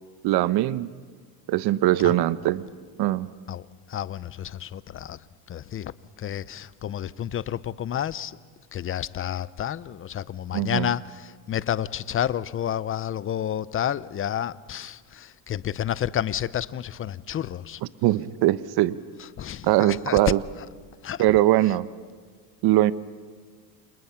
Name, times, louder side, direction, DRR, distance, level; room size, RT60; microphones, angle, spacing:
voice 1, 0.2-0.9 1.5-2.7 3.0-3.3 10.5-10.9 18.0-19.0 19.6-20.4 21.2-21.9 22.6-22.9, right 15 dB, 50° right, 1.0 m, -21 dB
voice 2, 3.5-5.2 5.5-5.9 6.2-8.4 8.7-17.8 19.2-20.2 21.0-21.2, left 10 dB, 25° left, 0.7 m, -30 dB
29.5 x 28.0 x 5.9 m
supercardioid pair, 110°, 50 cm